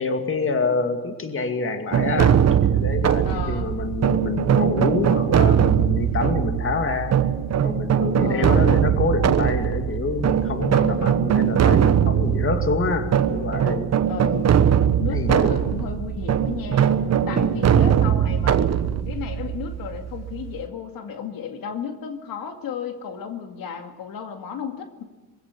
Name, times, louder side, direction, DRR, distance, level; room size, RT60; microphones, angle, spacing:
voice 1, 0.0-7.2 7.6-13.9 15.1-15.5 17.2-17.7, left 4 dB, 40° left, 6 dB, 2.4 m, -27 dB
sound 1, 1.9-20.6, right 9 dB, 50° right, 1.2 m, -21 dB
voice 2, 3.2-3.7 8.2-8.6 10.6-11.1 14.1-14.5 15.0-16.9 17.3-18.6 19.1-25.0, left 7 dB, 80° left, 5 dB, 2.2 m, -33 dB
22.5 x 16.0 x 8.4 m, 1.2 s
cardioid pair, 110°, 34 cm